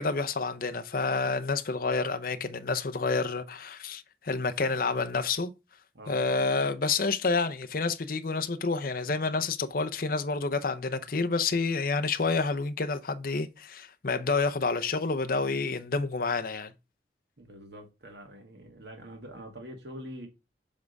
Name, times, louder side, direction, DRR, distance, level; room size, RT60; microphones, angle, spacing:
voice 1, 0.0-5.5 6.1-16.7, left 4 dB, 50° left, 0.7 m, -29 dB
voice 2, 5.9-6.3 17.4-20.3, equal, 70° right, 1.9 m, -45 dB
7.4 x 3.6 x 5.2 m
head